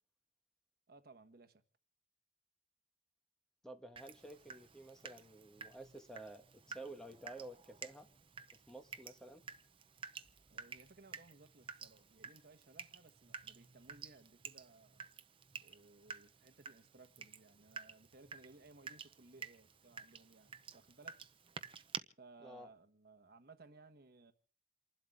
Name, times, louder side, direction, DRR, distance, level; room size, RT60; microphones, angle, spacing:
voice 1, 0.9-1.6 10.5-15.0 15.6-21.2 22.2-24.3, right 3 dB, 60° right, 1.3 m, -61 dB
voice 2, 3.6-8.1 8.5-9.4 22.4-22.7, right 2 dB, 5° left, 1.5 m, -52 dB
Water tap faucet / Drip, 4.0-22.0, right 6 dB, 30° right, 0.8 m, -52 dB
29.0 x 12.0 x 3.5 m
head